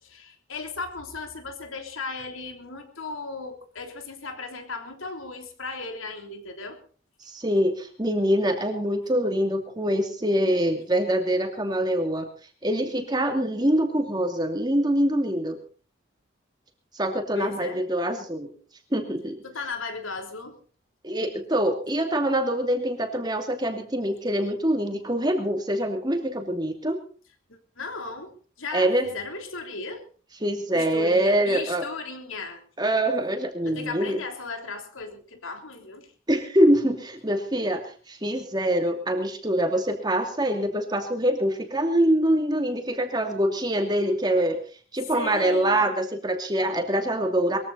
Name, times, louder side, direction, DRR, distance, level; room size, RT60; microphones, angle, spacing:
voice 1, 0.0-6.8 17.3-17.8 19.4-20.6 27.5-30.0 30.7-32.6 33.6-36.1 45.1-45.9, left 3 dB, 80° left, 5 dB, 3.4 m, -36 dB
voice 2, 7.3-12.3 12.6-15.6 16.9-18.5 18.9-19.4 21.0-27.0 28.7-29.1 30.4-31.8 32.8-34.2 36.3-37.8 38.1-44.6 44.9-47.6, right 1 dB, 20° right, 4 dB, 2.6 m, -24 dB
22.0 x 15.0 x 4.2 m, 0.40 s
head